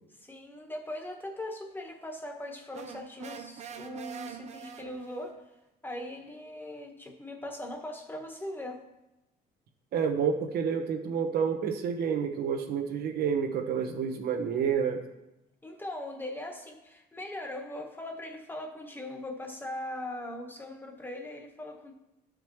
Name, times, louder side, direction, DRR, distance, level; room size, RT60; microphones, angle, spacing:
voice 1, 0.2-5.4 5.8-8.9 15.6-21.9, left 1 dB, 10° left, 3 dB, 1.2 m, -40 dB
sound 1, 2.7-5.3, right 8 dB, 40° right, 0.7 m, -44 dB
voice 2, 9.9-15.0, right 7 dB, 70° right, 6 dB, 1.1 m, -29 dB
12.5 x 5.2 x 3.1 m, 0.93 s
cardioid pair, 110°, 17 cm